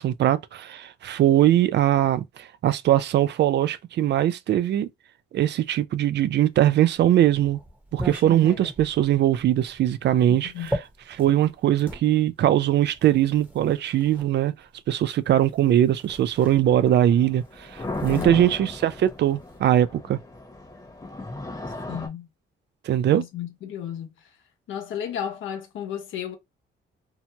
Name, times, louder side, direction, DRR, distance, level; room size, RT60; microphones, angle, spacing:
voice 1, 0.0-4.9 5.3-7.6 7.9-10.5 11.1-14.5 14.9-20.2 22.8-23.2, right 12 dB, 60° right, 0.4 m, -21 dB
sound 1, 6.7-12.1 12.9-14.3 15.5-15.7 16.0-17.1 17.4-19.6, right 1 dB, 10° right, 1.0 m, -37 dB
voice 2, 10.3-10.7 18.1-18.5 21.9-22.3 23.1-24.3 24.7-26.4, left 9 dB, 80° left, 1.0 m, -33 dB
sound 2, 16.6-22.1, left 2 dB, 20° left, 1.1 m, -36 dB
2.8 x 2.1 x 2.9 m
cardioid pair, 90°, 20 cm